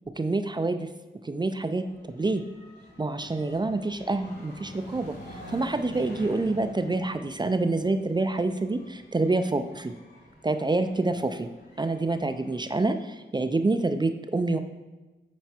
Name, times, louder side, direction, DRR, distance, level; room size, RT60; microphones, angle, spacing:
voice 1, 0.2-0.9 1.2-2.4 3.0-5.1 5.5-9.9 10.4-11.5 11.8-14.6, right 2 dB, 25° right, 9 dB, 0.4 m, -27 dB
sound 1, 1.8-12.9, equal, 50° left, 2.8 m, -48 dB
9.2 x 4.5 x 4.3 m, 1.2 s
wide cardioid pair, 90°, 19 cm